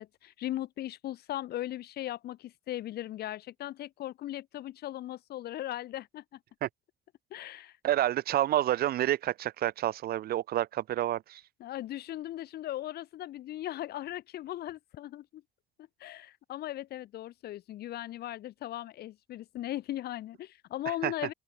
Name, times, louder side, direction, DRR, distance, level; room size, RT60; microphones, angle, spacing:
voice 1, 0.0-6.4 7.3-7.8 11.6-15.4 16.0-21.3, left 13 dB, 70° left, 5.1 m, -38 dB
voice 2, 7.8-11.4 21.0-21.1, right 13 dB, 65° right, 1.5 m, -29 dB
open air
cardioid pair, 110°, 17 cm